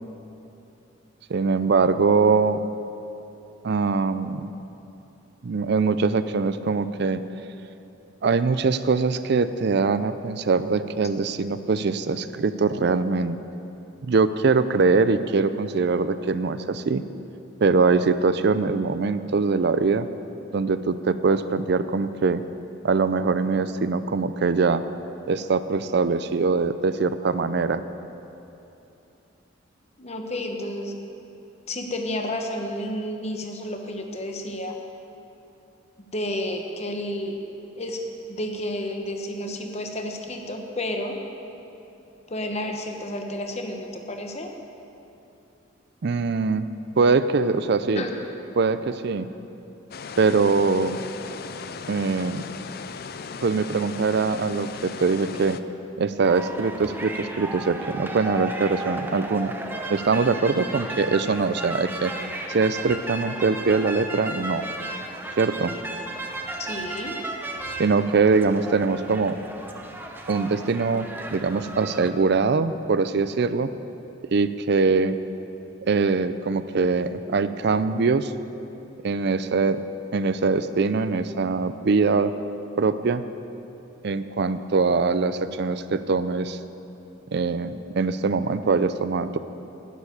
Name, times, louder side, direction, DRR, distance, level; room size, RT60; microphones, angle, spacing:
voice 1, 1.3-2.6 3.6-4.5 5.4-7.2 8.2-13.4 14.0-17.0 17.6-20.1 20.5-22.4 22.8-24.8 25.3-27.8 46.0-46.7 47.0-48.0 48.6-49.3 50.2-51.0 51.9-52.5 53.4-55.6 56.0-59.5 59.9-62.1 62.5-64.6 65.4-65.7 67.8-69.4 70.3-73.7 74.2-75.2 75.8-78.3 79.0-79.8 80.1-82.3 82.8-83.2 84.0-86.6 87.3-89.4, right 4 dB, 55° right, 13 dB, 0.4 m, -22 dB
voice 2, 30.0-31.0 31.7-34.8 36.1-37.4 37.8-38.0 38.3-41.2 42.3-44.5 48.0-48.1 66.6-67.2, left 1 dB, 35° left, 3 dB, 1.0 m, -31 dB
sound 1, 49.9-55.6, left 5 dB, 50° left, 0.4 m, -37 dB
sound 2, 56.2-72.1, right 2 dB, 10° right, 0.7 m, -34 dB
11.0 x 7.3 x 9.3 m, 2.9 s
head